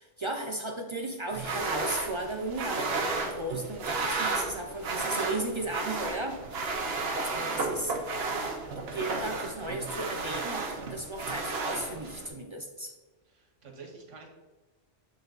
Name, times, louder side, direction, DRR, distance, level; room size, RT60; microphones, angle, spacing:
voice 1, 0.0-6.4 7.3-8.4 8.8-12.9, right 2 dB, 45° right, 3 dB, 0.4 m, -35 dB
sound 1, 1.3-12.3, right 3 dB, 60° right, 1.1 m, -33 dB
voice 2, 7.2-8.0 13.3-14.3, right 4 dB, 90° right, 1 dB, 1.4 m, -50 dB
7.2 x 4.0 x 3.9 m, 1.2 s
omnidirectional pair, 1.2 m